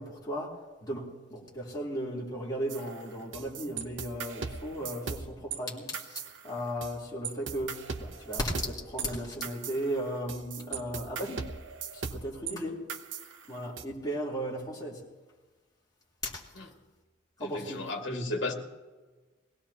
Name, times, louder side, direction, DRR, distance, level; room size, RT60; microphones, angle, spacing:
voice 1, 0.0-11.4 11.9-12.8 13.5-15.1 16.2-16.4 17.4-17.9, equal, 20° left, -6 dB, 3.5 m, -36 dB
sound 1, 2.7-5.6 5.9-7.0 7.2-12.5 12.9-13.8, right 6 dB, 70° right, 0.9 m, -39 dB
voice 2, 17.4-18.5, left 2 dB, 65° left, 1 dB, 2.2 m, -34 dB
22.0 x 17.0 x 2.9 m, 1.3 s
head